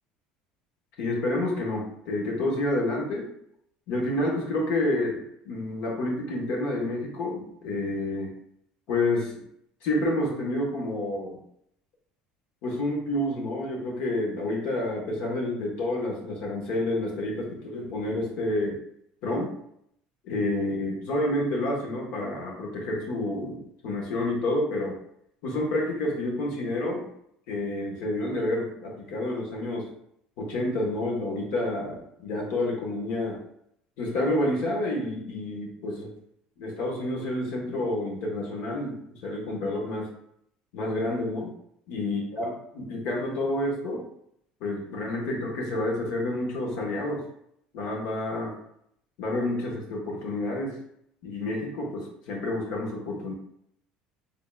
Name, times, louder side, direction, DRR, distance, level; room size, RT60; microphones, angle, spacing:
voice 1, 1.0-3.3 3.9-8.3 8.9-9.4 9.8-11.4 12.6-18.8 19.2-19.5 20.2-24.9 25.4-27.1 27.5-29.9 30.4-33.4 34.0-36.1 36.6-40.1 40.7-41.5 41.9-44.0 44.6-47.2 47.7-48.5 49.2-50.8 51.2-53.3, left 1 dB, 65° left, -1 dB, 1.3 m, -29 dB
3.7 x 2.4 x 3.4 m, 0.72 s
cardioid pair, 150°, 3 cm